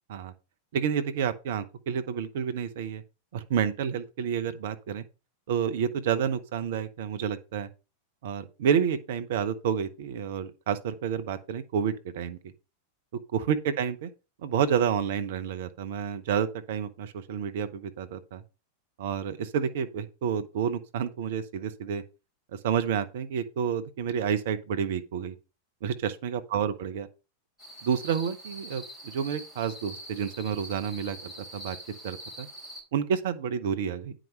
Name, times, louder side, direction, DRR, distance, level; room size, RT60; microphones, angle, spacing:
voice 1, 0.7-3.0 3.3-5.0 5.5-7.7 8.2-12.5 13.3-14.1 14.4-18.4 19.0-22.0 22.5-25.3 25.8-27.1 27.8-31.8 32.0-32.5 32.9-34.1, right 7 dB, 55° right, 1.0 m, -29 dB
sound 1, 27.6-32.8, equal, 5° left, 4.2 m, -44 dB
9.4 x 5.1 x 5.5 m
figure-of-eight pair, 90°, 0 cm